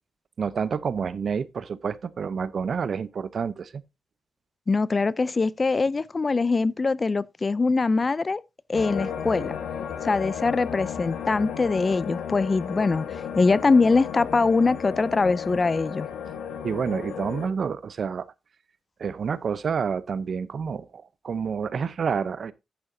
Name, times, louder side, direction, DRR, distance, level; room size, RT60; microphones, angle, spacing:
voice 1, 0.4-3.8 16.6-18.3 19.0-22.5, right 6 dB, 55° right, 0.7 m, -29 dB
voice 2, 4.7-8.4 8.7-9.5 10.0-16.1, left 4 dB, 30° left, 0.4 m, -23 dB
sound 1, 8.7-17.5, left 8 dB, 90° left, 1.3 m, -34 dB
10.5 x 8.7 x 2.7 m
cardioid pair, 95°, 0 cm